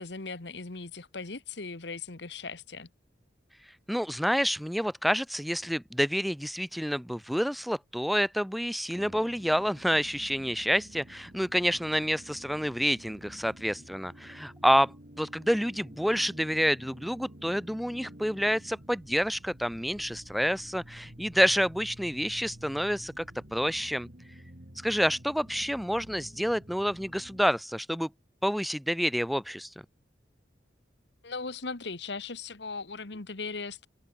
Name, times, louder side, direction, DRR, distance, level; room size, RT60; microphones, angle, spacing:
voice 1, 0.0-2.9 31.2-33.9, left 4 dB, 70° left, 1.5 m, -38 dB
voice 2, 3.9-23.2 23.5-24.1 24.8-28.1 28.4-29.7, equal, ahead, 1.3 m, -28 dB
sound 1, 8.9-27.4, equal, 50° right, 3.7 m, -50 dB
head